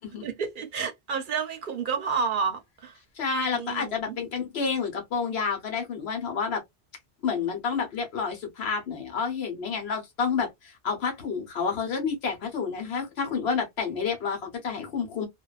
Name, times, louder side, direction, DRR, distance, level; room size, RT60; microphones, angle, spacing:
voice 1, 0.2-3.0 3.5-4.2, right 6 dB, 55° right, 0.7 m, -30 dB
voice 2, 3.2-6.6 7.2-15.3, left 5 dB, 75° left, 1.2 m, -29 dB
2.6 x 2.2 x 2.3 m
omnidirectional pair, 1.1 m